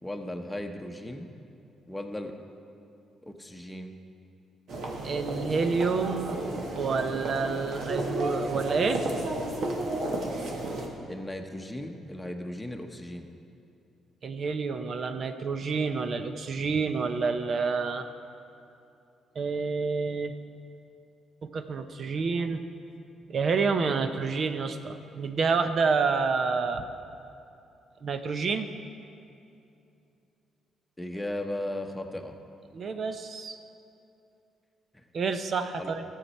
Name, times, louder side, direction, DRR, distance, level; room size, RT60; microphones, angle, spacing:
voice 1, 0.0-1.3 1.9-2.3 3.2-3.9 11.1-13.3 31.0-32.3 34.9-35.0 35.8-36.0, left 1 dB, 10° left, 3 dB, 0.9 m, -36 dB
sound 1, 4.7-10.9, right 1 dB, 70° right, 1.4 m, -32 dB
voice 2, 5.0-6.4 6.8-9.0 14.2-18.1 19.3-20.3 21.4-22.6 23.3-26.8 28.0-28.7 32.7-33.6 35.1-36.0, right 4 dB, 50° right, 8 dB, 0.6 m, -28 dB
14.0 x 7.3 x 4.2 m, 2.7 s
cardioid pair, 90°, 0 cm